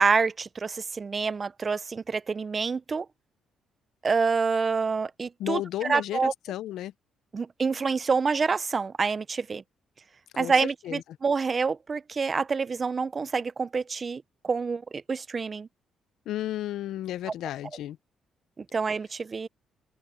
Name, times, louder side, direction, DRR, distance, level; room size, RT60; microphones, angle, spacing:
voice 1, 0.0-3.1 4.0-6.3 7.3-9.6 10.4-15.7 18.6-19.5, right 5 dB, 35° right, 0.6 m, -27 dB
voice 2, 5.4-6.9 10.3-10.6 10.8-11.0 16.3-18.0, left 13 dB, 80° left, 0.6 m, -33 dB
open air
cardioid pair, 90°, 0 cm